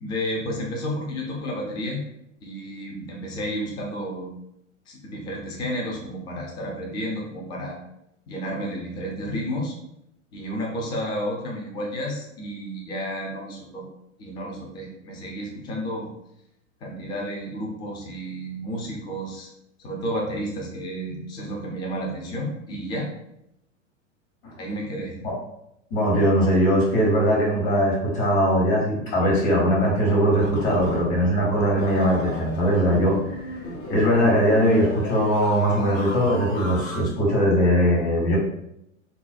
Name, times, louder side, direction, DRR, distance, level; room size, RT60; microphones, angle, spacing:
voice 1, 0.0-2.0 2.4-4.3 4.9-7.7 8.3-9.7 10.3-13.8 14.2-16.1 16.8-19.5 19.8-23.1 24.6-25.2, equal, 10° left, -2 dB, 0.4 m, -31 dB
voice 2, 25.9-33.5 33.9-38.4, equal, 55° left, -3 dB, 1.2 m, -20 dB
sound 1, 30.3-37.0, left 1 dB, 75° left, 0.8 m, -35 dB
2.4 x 2.1 x 2.4 m, 0.80 s
figure-of-eight pair, 95°, 39 cm